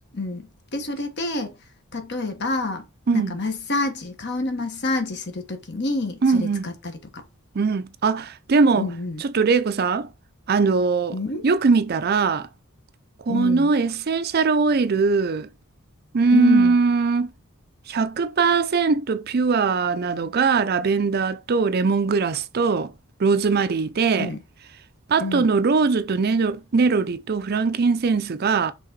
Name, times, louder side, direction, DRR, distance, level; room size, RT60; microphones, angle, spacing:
voice 1, 0.1-1.6 1.9-2.8 3.1-7.2 8.8-9.2 11.1-11.4 13.3-13.7 16.3-16.8 24.2-24.4 25.1-25.5, left 3 dB, 50° left, 1.2 m, -28 dB
voice 2, 6.2-6.7 7.5-8.9 9.2-10.1 10.5-11.2 11.4-12.5 13.3-15.5 16.1-17.3 17.9-22.9 23.2-24.3 25.1-28.7, right 4 dB, 45° right, 0.5 m, -21 dB
5.7 x 3.6 x 4.6 m
head